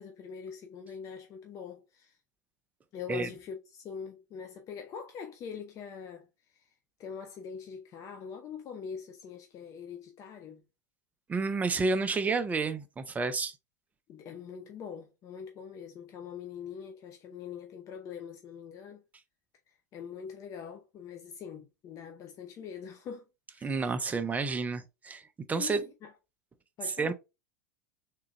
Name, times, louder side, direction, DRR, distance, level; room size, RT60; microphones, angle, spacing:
voice 1, 0.0-2.2 2.9-6.6 7.0-10.6 14.1-19.0 19.9-23.3 23.5-23.9 25.6-26.1 26.8-27.1, left 7 dB, 35° left, 0.6 m, -43 dB
voice 2, 11.3-13.5 23.6-25.2 25.5-25.8 27.0-27.1, right 4 dB, 15° right, 0.6 m, -30 dB
3.6 x 2.9 x 3.3 m
figure-of-eight pair, 90°, 10 cm